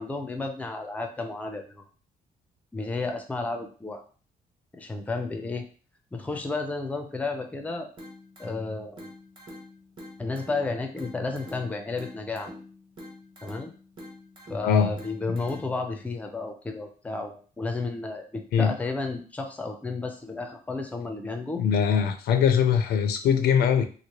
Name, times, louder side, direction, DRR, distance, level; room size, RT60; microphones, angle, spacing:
voice 1, 0.0-1.8 2.7-4.0 4.8-5.6 6.1-7.9 8.4-9.1 10.2-12.5 13.4-13.7 14.5-21.6, left 3 dB, 10° left, 5 dB, 0.4 m, -32 dB
sound 1, 8.0-16.0, left 1 dB, 35° right, 1.2 m, -46 dB
voice 2, 21.6-23.8, left 7 dB, 85° left, 7 dB, 0.5 m, -22 dB
3.0 x 2.5 x 2.8 m, 0.39 s
cardioid pair, 145°, 16 cm